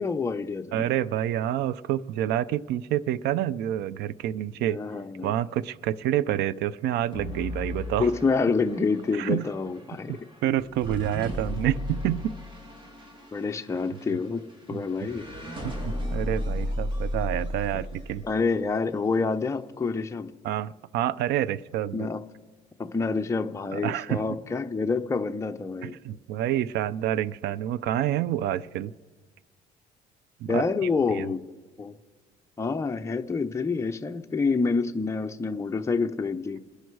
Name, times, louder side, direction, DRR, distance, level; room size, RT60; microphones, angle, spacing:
voice 1, 0.0-0.9 4.6-5.3 8.0-10.2 13.3-15.2 18.2-20.3 21.9-22.2 22.8-26.0 30.5-31.4 31.8-32.0 32.6-36.6, left 4 dB, 15° left, 5 dB, 0.8 m, -27 dB
voice 2, 0.7-4.8 5.2-8.1 9.1-9.5 10.1-12.3 13.9-14.0 14.7-15.1 15.6-18.2 20.4-22.1 23.7-24.2 25.8-28.9 30.4-30.6 31.1-31.3, right 12 dB, 80° right, 20 dB, 0.5 m, -28 dB
sound 1, 7.1-18.4, left 1 dB, 30° right, 3.0 m, -35 dB
28.0 x 11.0 x 4.7 m, 1.4 s
cardioid pair, 110°, 17 cm